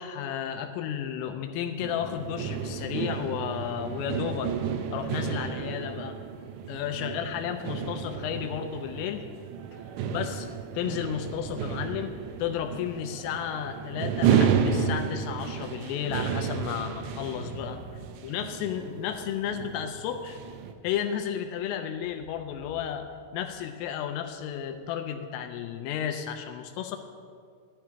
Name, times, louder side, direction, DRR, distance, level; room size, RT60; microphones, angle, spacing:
voice 1, 0.0-4.5 4.9-6.2 6.7-9.2 10.1-10.5 10.7-12.1 12.4-17.8 18.2-20.4 20.8-23.1 23.3-27.0, left 9 dB, 85° left, 5 dB, 3.2 m, -33 dB
sound 1, 1.8-20.7, right 7 dB, 85° right, 2.7 m, -32 dB
sound 2, 10.0-24.8, right 1 dB, 60° right, 3.3 m, -50 dB
17.5 x 12.5 x 2.9 m, 2.1 s
omnidirectional pair, 6.0 m